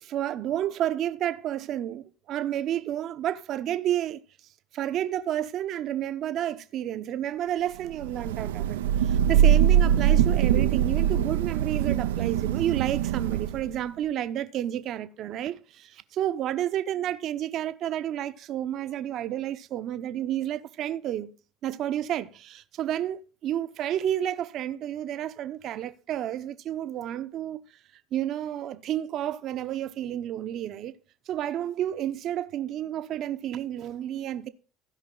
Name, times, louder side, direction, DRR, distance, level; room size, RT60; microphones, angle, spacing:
voice 1, 0.0-4.2 4.7-21.3 21.6-27.6 28.1-30.9 31.3-34.5, right 11 dB, 55° right, 0.7 m, -31 dB
Thunder / Rain, 8.0-13.8, right 10 dB, 90° right, 0.4 m, -23 dB
15.5 x 5.3 x 3.8 m
hypercardioid pair, 85°, 0 cm